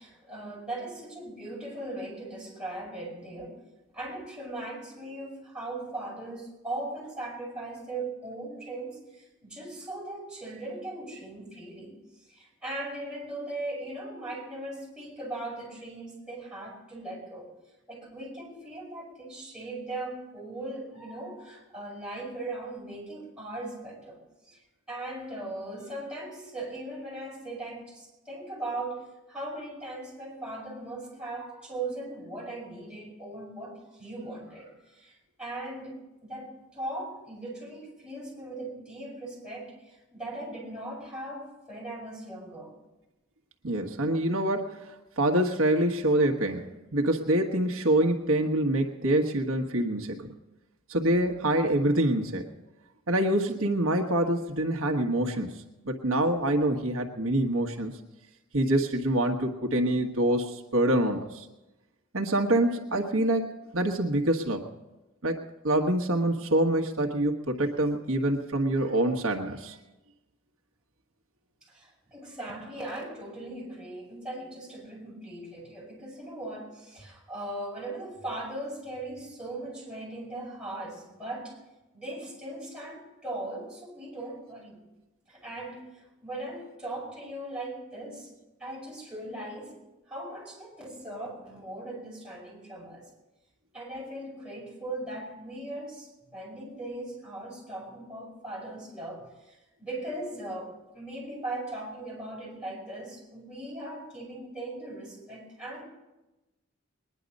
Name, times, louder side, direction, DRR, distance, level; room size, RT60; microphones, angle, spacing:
voice 1, 0.0-3.6 3.9-12.0 12.3-17.5 17.9-24.6 24.9-42.8 71.7-81.6 81.9-84.8 85.3-88.3 88.6-89.8 90.1-93.1 93.7-105.8, right 2 dB, 5° right, -6 dB, 5.6 m, -39 dB
voice 2, 43.6-50.3 50.9-52.5 53.1-57.9 58.5-61.5 62.1-64.7 65.2-65.4 65.6-69.8, right 1 dB, 85° right, 3 dB, 1.4 m, -26 dB
21.0 x 10.5 x 5.3 m, 1.0 s
head